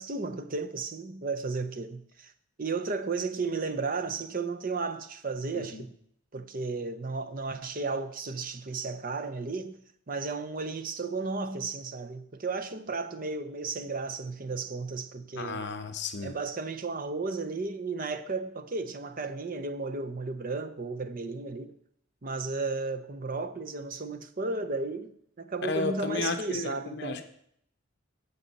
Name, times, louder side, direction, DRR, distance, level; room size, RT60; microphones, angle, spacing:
voice 1, 0.0-2.3 2.6-5.9 6.3-9.8 10.1-15.6 16.2-21.7 22.2-27.2, right 3 dB, 40° right, 0.6 m, -34 dB
voice 2, 5.5-5.8 15.4-16.3 25.6-27.2, left 3 dB, 50° left, 0.8 m, -33 dB
15.5 x 5.5 x 4.1 m
head